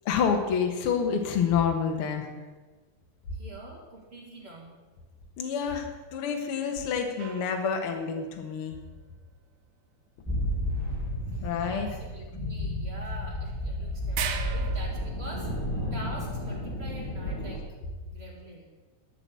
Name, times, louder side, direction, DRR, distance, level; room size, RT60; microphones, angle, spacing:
voice 1, 0.0-2.3 5.4-8.8 11.4-11.9, left 6 dB, 60° left, 4 dB, 1.5 m, -28 dB
voice 2, 3.3-4.7 11.3-15.5 15.9-17.6 18.0-18.6, right 1 dB, 25° right, -2 dB, 1.6 m, -45 dB
sound 1, 7.2-8.5 13.1-13.2 13.5-13.6 14.1-15.1, right 9 dB, 80° right, 2.6 m, -36 dB
sound 2, 10.3-17.6, left 1 dB, 15° left, 1.0 m, -32 dB
11.5 x 6.1 x 8.3 m, 1.3 s
omnidirectional pair, 4.3 m